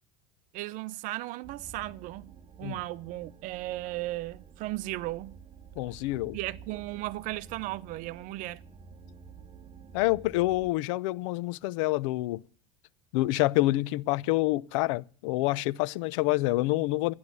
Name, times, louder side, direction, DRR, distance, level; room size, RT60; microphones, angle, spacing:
voice 1, 0.5-2.3 2.6-5.4 6.3-8.6, right 18 dB, 55° right, 0.8 m, -36 dB
sound 1, 1.4-10.7, right 6 dB, 35° right, 1.7 m, -50 dB
voice 2, 5.8-6.4 9.9-12.4 13.1-17.1, left 19 dB, 80° left, 0.7 m, -27 dB
12.5 x 10.5 x 9.6 m
supercardioid pair, 135°, 16 cm